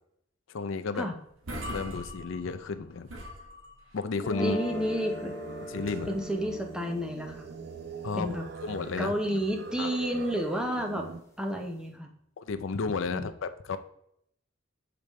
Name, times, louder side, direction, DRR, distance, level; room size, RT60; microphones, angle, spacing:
voice 1, 0.5-1.1 1.7-3.1 3.9-4.6 5.7-6.1 8.0-8.3 8.6-9.1 9.8-10.0 12.4-13.8, left 4 dB, 75° left, 10 dB, 0.5 m, -32 dB
sound 1, 1.0-1.1 1.3-2.7 3.1-4.0 5.7-6.3, equal, 90° right, 1.4 m, -41 dB
sound 2, 4.1-10.2, left 1 dB, 15° left, 1.0 m, -41 dB
voice 2, 4.4-5.3 6.1-7.5 8.2-8.4 9.0-11.0 11.4-12.1 13.1-13.3, equal, 5° right, 3 dB, 0.7 m, -31 dB
Singing, 4.5-11.2, right 5 dB, 55° right, 0.4 m, -42 dB
6.7 x 5.1 x 3.1 m, 0.74 s
head